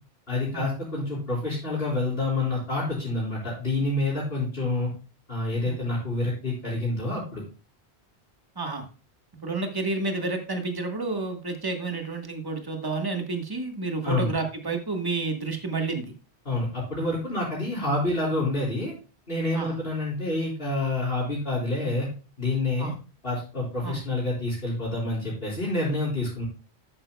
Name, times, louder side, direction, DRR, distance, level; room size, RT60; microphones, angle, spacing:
voice 1, 0.3-4.9 5.3-7.4 14.0-14.3 16.5-18.9 19.3-22.1 22.4-22.9 23.2-26.4, left 2 dB, 60° left, -8 dB, 3.9 m, -28 dB
voice 2, 8.5-8.9 9.4-16.1 19.5-19.8 22.8-22.9 23.8-24.0, right 3 dB, 20° right, 4 dB, 1.3 m, -30 dB
11.0 x 9.1 x 2.3 m, 0.33 s
omnidirectional pair, 1.1 m